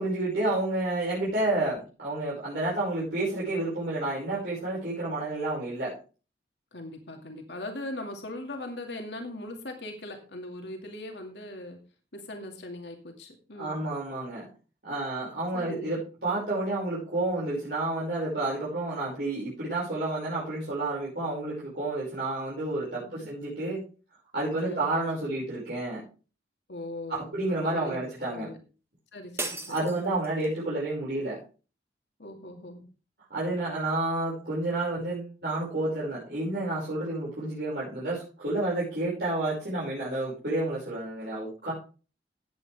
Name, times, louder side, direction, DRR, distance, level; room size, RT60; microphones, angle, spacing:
voice 1, 0.0-5.9 13.6-14.5 14.8-23.8 24.3-26.0 27.1-28.5 29.7-31.4 33.3-41.7, right 2 dB, 65° right, -8 dB, 5.7 m, -30 dB
voice 2, 6.7-11.8 12.1-13.8 15.5-16.0 23.0-23.3 24.6-24.9 26.7-28.0 28.3-28.6 29.1-29.9 32.2-32.9 41.6-41.7, left 1 dB, 80° left, 3 dB, 2.3 m, -40 dB
sound 1, 29.4-30.6, right 3 dB, 15° right, 1.6 m, -37 dB
15.5 x 8.7 x 3.5 m, 0.35 s
head